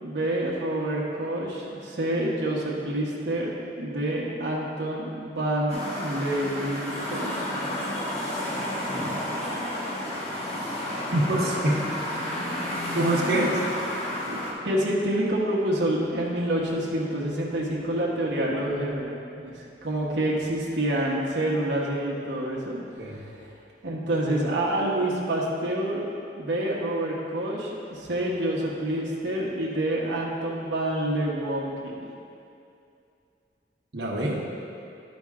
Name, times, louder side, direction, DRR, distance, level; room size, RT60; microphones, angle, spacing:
voice 1, 0.0-3.5 3.8-7.4 14.3-14.4 14.6-22.8 23.1-23.3 23.8-26.1 26.4-32.1, right 1 dB, 80° right, -4 dB, 1.1 m, -27 dB
sound 1, 5.7-14.5, left 1 dB, 35° left, 1.4 m, -31 dB
voice 2, 11.1-11.8 12.9-13.6 23.0-23.2 33.9-34.4, right 1 dB, 60° right, -4 dB, 1.1 m, -25 dB
11.5 x 5.2 x 3.7 m, 2.5 s
head